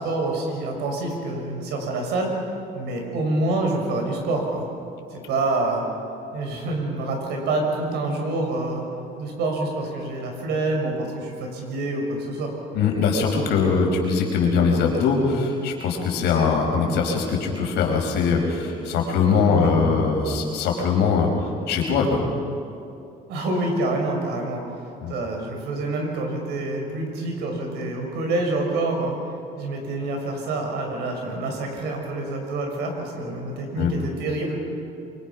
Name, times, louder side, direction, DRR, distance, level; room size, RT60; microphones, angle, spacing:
voice 1, 0.0-2.3 2.7-4.7 5.1-5.8 6.3-8.9 9.2-12.5 19.5-19.8 23.3-24.6 25.1-29.2 29.6-34.6, right 2 dB, 80° right, 1 dB, 6.1 m, -27 dB
voice 2, 12.7-22.2 25.0-25.1 33.8-33.9, left 5 dB, 85° left, 0 dB, 5.1 m, -21 dB
26.5 x 23.5 x 6.1 m, 2.6 s
cardioid pair, 110°, 17 cm